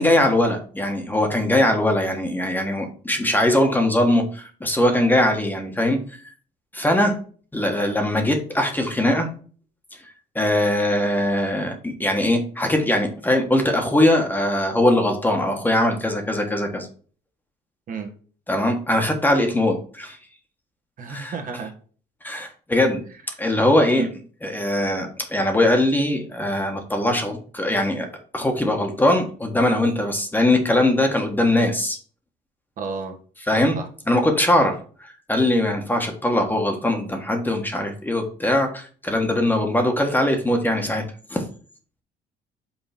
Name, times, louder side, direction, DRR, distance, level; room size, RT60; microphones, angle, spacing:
voice 1, 0.0-6.0 6.7-7.2 7.5-9.3 10.3-16.9 18.5-20.2 21.1-21.4 22.2-23.0 23.4-24.1 24.4-28.1 28.3-32.0 33.5-33.8 34.1-41.0 41.3-41.4, left 1 dB, 10° left, 4 dB, 1.4 m, -21 dB
voice 2, 21.0-21.7 23.9-24.1 32.8-33.2 33.7-33.9 39.6-39.7, right 4 dB, 55° right, 4 dB, 1.5 m, -31 dB
5.7 x 3.8 x 5.8 m, 0.41 s
cardioid pair, 110°, 17 cm